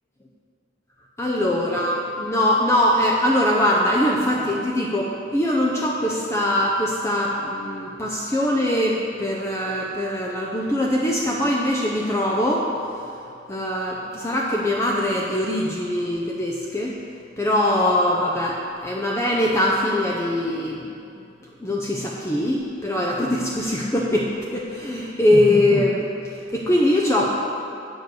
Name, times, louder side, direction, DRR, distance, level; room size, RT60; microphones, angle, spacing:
voice 1, 1.2-12.7 13.5-16.9 17.4-20.9 21.6-27.3, left 1 dB, 15° left, -3 dB, 0.7 m, -22 dB
8.2 x 7.1 x 6.4 m, 2.6 s
head